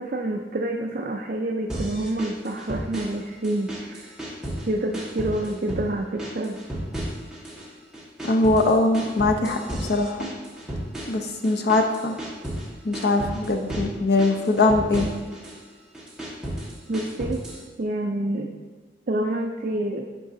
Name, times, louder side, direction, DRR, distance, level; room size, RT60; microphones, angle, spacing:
voice 1, 0.0-4.1 4.7-6.6 16.9-17.4 17.8-18.6 19.1-20.1, right 1 dB, 50° right, 2 dB, 0.4 m, -28 dB
sound 1, 1.7-3.2 3.4-4.7 4.9-5.9 6.2-7.7 7.9-12.7 12.9-13.9 14.2-15.6 15.9-17.6, right 1 dB, 5° right, 1.5 m, -33 dB
voice 2, 8.2-10.3 11.1-12.1 12.8-15.1, left 2 dB, 60° left, 3 dB, 0.7 m, -22 dB
11.5 x 4.7 x 2.7 m, 1.4 s
head